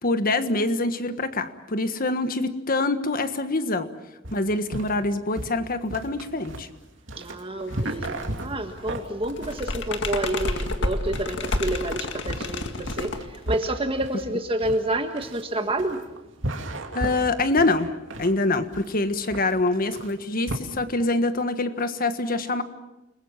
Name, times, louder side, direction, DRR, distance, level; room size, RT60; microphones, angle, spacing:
voice 1, 0.0-3.9 4.3-6.7 16.9-22.6, left 2 dB, 45° left, 10 dB, 1.6 m, -25 dB
sound 1, 4.2-20.6, right 1 dB, 75° right, 2.7 m, -35 dB
voice 2, 7.1-16.0, right 1 dB, 30° right, 4 dB, 1.6 m, -29 dB
sound 2, 7.7-8.3 8.6-13.8, left 2 dB, 65° left, 2.0 m, -30 dB
29.5 x 21.0 x 7.3 m, 0.99 s
head